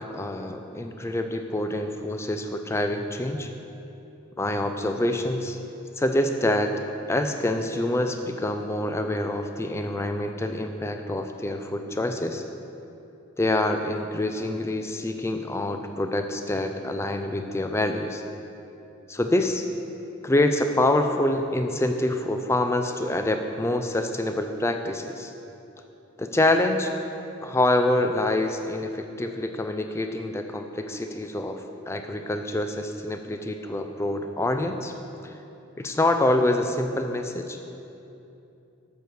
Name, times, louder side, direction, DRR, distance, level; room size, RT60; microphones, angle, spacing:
voice 1, 0.0-3.5 4.4-5.6 6.0-6.8 7.1-12.4 13.4-18.2 19.1-19.7 20.2-25.3 26.2-26.9 27.4-34.9 35.2-35.3 35.8-37.6, left 1 dB, 10° left, 6 dB, 0.3 m, -26 dB
7.8 x 4.6 x 6.6 m, 2.8 s
head